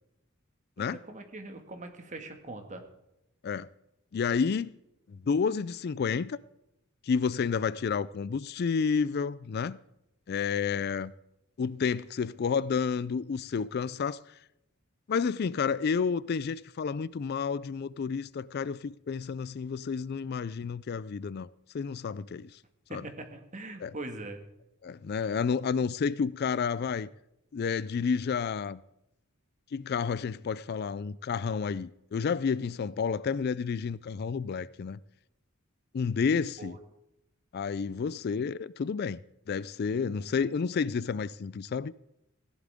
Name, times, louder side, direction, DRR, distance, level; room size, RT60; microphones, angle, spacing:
voice 1, 0.8-2.8 22.9-24.4 36.6-36.8, right 2 dB, 35° right, 1.8 m, -42 dB
voice 2, 4.1-4.7 5.1-6.4 7.0-9.8 10.3-11.1 11.6-14.3 15.1-21.5 21.7-22.6 22.9-23.0 23.8-23.9 24.8-27.1 27.5-28.8 29.7-35.0 35.9-36.8 37.5-39.2 39.5-41.9, left 5 dB, 50° left, 0.3 m, -30 dB
16.5 x 11.0 x 3.6 m
head